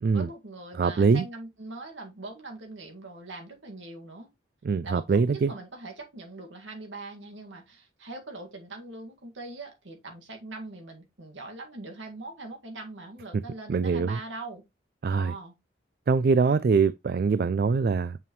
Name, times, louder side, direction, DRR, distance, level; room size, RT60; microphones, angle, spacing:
voice 1, 0.1-4.3 4.8-14.6 15.1-15.5, right 2 dB, 85° right, 1.9 m, -42 dB
voice 2, 0.7-1.3 4.6-5.5 13.7-14.2 15.0-15.3 16.1-18.2, right 5 dB, 50° right, 0.3 m, -23 dB
7.1 x 5.6 x 3.0 m
head